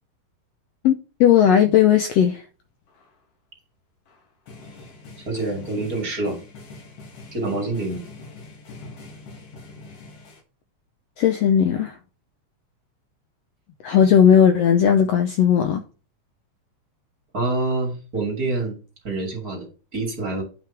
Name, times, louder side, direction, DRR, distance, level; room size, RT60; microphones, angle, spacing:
voice 1, 1.2-2.4 11.2-12.0 13.8-15.8, left 9 dB, 80° left, 1.5 m, -16 dB
sound 1, 2.9-3.1 4.1-10.4, left 3 dB, 55° left, 2.5 m, -43 dB
voice 2, 5.2-6.4 7.3-8.0 17.3-18.8 19.0-20.4, right 2 dB, 30° right, 2.7 m, -26 dB
10.0 x 5.6 x 3.5 m
omnidirectional pair, 3.6 m